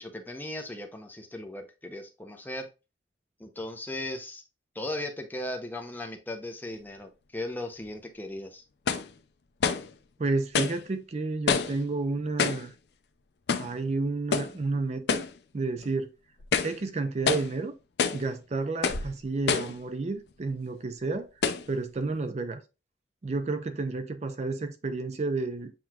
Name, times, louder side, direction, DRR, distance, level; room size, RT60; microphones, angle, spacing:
voice 1, 0.0-2.7 3.4-4.4 4.8-8.6, left 1 dB, 10° left, 0.6 m, -37 dB
sound 1, 7.8-7.9 8.9-9.1 9.6-9.9 10.5-10.8 11.5-11.8 12.4-12.7 13.5-13.8 14.3-14.6 15.1-15.4 15.8-15.9 16.4-16.8 17.3-17.5 18.0-18.3 18.8-19.1 19.5-19.8 20.5-20.6 21.4-21.7, left 6 dB, 65° left, 0.4 m, -27 dB
voice 2, 10.2-12.7 13.5-15.3 15.5-16.1 16.6-17.7 18.1-21.3 21.7-22.6 23.2-25.7, right 3 dB, 35° right, 0.4 m, -31 dB
7.6 x 3.0 x 2.3 m
head